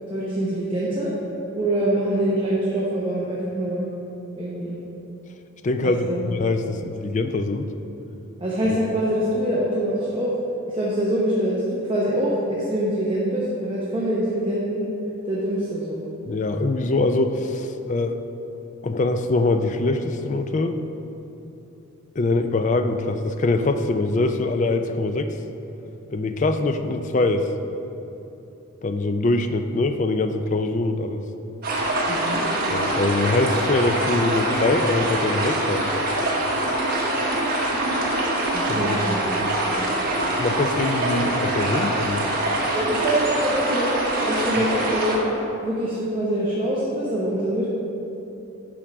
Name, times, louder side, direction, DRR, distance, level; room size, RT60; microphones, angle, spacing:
voice 1, 0.1-1.1 1.5-3.9 4.4-4.8 5.8-6.3 8.4-10.3 10.7-14.9 15.2-16.0 32.1-32.4 38.5-39.8 42.7-44.0 44.2-45.2 45.6-47.7, right 1 dB, 25° right, -6 dB, 0.9 m, -24 dB
voice 2, 5.6-7.7 16.3-18.2 18.8-20.8 22.2-25.4 26.1-27.5 28.8-31.2 32.7-35.9 38.7-39.0 39.4-39.5 40.4-42.4, left 2 dB, 35° left, 8 dB, 0.4 m, -23 dB
sound 1, 31.6-45.2, right 1 dB, 45° right, 1.3 m, -24 dB
9.9 x 3.7 x 5.9 m, 3.0 s
head